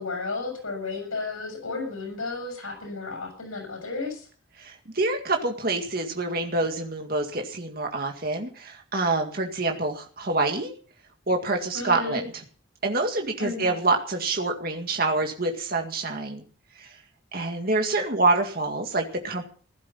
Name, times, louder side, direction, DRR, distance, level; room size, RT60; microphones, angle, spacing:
voice 1, 0.0-4.3 11.7-12.2 13.4-13.8, left 3 dB, 90° left, 4 dB, 7.2 m, -33 dB
voice 2, 4.6-10.7 11.3-12.3 12.8-16.4 16.8-17.0 17.3-19.4, right 2 dB, 45° right, 3 dB, 2.0 m, -26 dB
16.0 x 12.5 x 5.6 m, 0.42 s
head